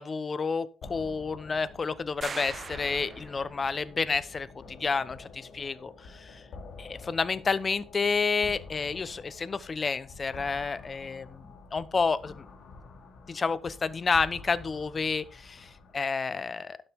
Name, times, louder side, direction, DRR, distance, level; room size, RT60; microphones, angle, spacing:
voice 1, 0.0-6.4 6.8-12.5 13.3-16.8, left 4 dB, 35° left, 16 dB, 0.8 m, -30 dB
sound 1, 0.8-16.1, left 3 dB, 65° left, 2.5 m, -48 dB
sound 2, 2.2-3.7, right 5 dB, 40° right, 0.9 m, -41 dB
12.0 x 7.7 x 3.6 m, 0.36 s
cardioid pair, 90°, 0 cm